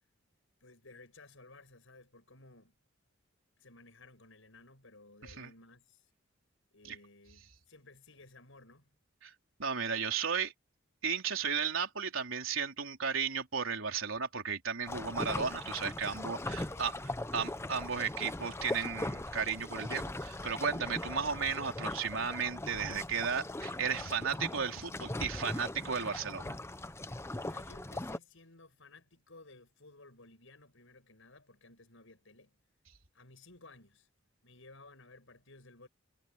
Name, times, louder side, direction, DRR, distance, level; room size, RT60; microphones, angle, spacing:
voice 1, 0.6-2.7 3.6-6.1 6.7-8.9 16.1-17.5 27.3-32.6 33.1-34.1 34.4-35.9, left 2 dB, 70° left, 7.7 m, -57 dB
voice 2, 9.6-10.5 11.0-16.9 17.3-26.6, right 6 dB, 75° right, 4.0 m, -34 dB
Kayaking in rough weather, 14.9-28.2, left 1 dB, 15° left, 0.8 m, -40 dB
head